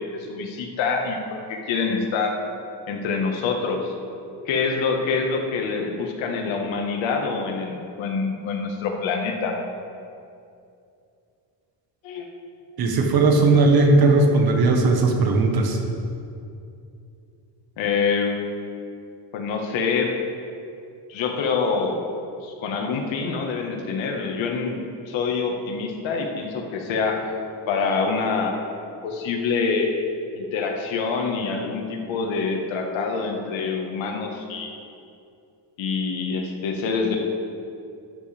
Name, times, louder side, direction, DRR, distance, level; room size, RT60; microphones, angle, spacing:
voice 1, 0.0-2.4 2.9-3.9 4.5-9.6 12.0-12.3 17.8-18.4 19.3-20.1 21.1-22.0 22.4-27.3 27.7-28.5 29.0-29.9 30.4-34.7 35.8-37.2, left 4 dB, 80° left, 2 dB, 1.6 m, -26 dB
voice 2, 12.8-15.8, right 3 dB, 55° right, 2 dB, 1.5 m, -17 dB
12.5 x 11.5 x 3.5 m, 2.6 s
cardioid pair, 155°, 45 cm